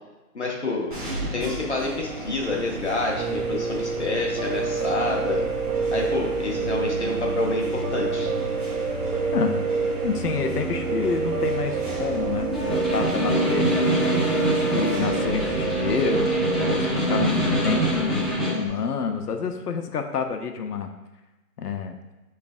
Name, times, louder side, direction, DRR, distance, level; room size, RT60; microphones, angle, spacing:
voice 1, 0.3-0.9 1.3-5.5 5.9-8.3, left 2 dB, 45° left, -1 dB, 0.7 m, -28 dB
sound 1, 0.9-18.3, right 1 dB, 35° right, 0.8 m, -34 dB
Piano, 3.2-16.9, right 5 dB, 80° right, 0.6 m, -28 dB
voice 2, 10.0-13.8 14.5-20.9 21.6-21.9, left 6 dB, 75° left, 5 dB, 0.7 m, -28 dB
Snare drum, 12.5-18.7, right 1 dB, ahead, 0.4 m, -25 dB
5.8 x 3.2 x 2.4 m, 1.1 s
hypercardioid pair, 170°, 47 cm